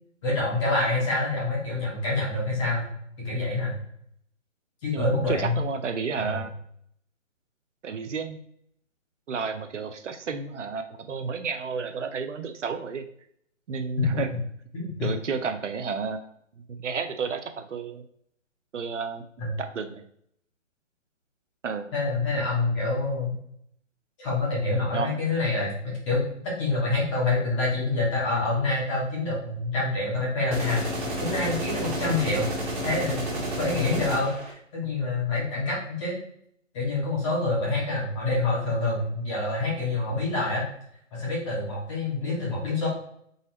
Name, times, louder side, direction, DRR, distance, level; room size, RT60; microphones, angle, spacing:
voice 1, 0.2-2.9 3.2-3.8 4.8-5.6 6.2-6.4 14.0-14.4 14.7-15.1 19.4-19.5 21.9-23.3 24.2-30.8 31.2-32.5 32.8-33.2 33.6-36.2 36.7-40.6 41.1-42.9, left 2 dB, 25° left, -6 dB, 1.8 m, -27 dB
voice 2, 4.9-6.5 7.8-8.4 9.3-13.1 13.7-14.3 15.0-16.2 16.7-18.0 18.7-19.2 19.6-20.0 21.6-21.9 24.9-25.2, right 5 dB, 70° right, 8 dB, 0.6 m, -31 dB
sound 1, 30.5-34.5, right 1 dB, 40° right, 1.7 m, -31 dB
4.0 x 4.0 x 2.8 m, 0.68 s
hypercardioid pair, 155°, 38 cm